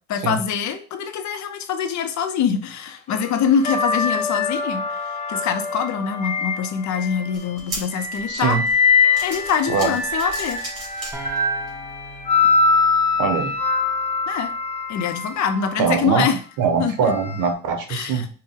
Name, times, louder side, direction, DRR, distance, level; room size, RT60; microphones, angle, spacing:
voice 1, 0.1-8.6 9.2-10.6 14.3-14.5 14.9-16.4 16.8-17.1 17.9-18.3, left 7 dB, 65° left, 8 dB, 0.7 m, -24 dB
sound 1, 3.1-7.4 7.9-16.0 17.0-17.3, left 4 dB, 20° left, 0.9 m, -23 dB
sound 2, 7.3-11.7 12.2-12.3 13.3-13.4, right 2 dB, 50° right, 1.9 m, -36 dB
voice 2, 8.3-8.6 9.7-9.9 13.2-13.5 15.8-16.3 16.6-18.3, right 6 dB, 85° right, 5 dB, 0.9 m, -22 dB
sound 3, 11.1-14.8, right 2 dB, 10° right, 0.7 m, -41 dB
4.3 x 2.2 x 3.6 m, 0.40 s
cardioid pair, 110°, 31 cm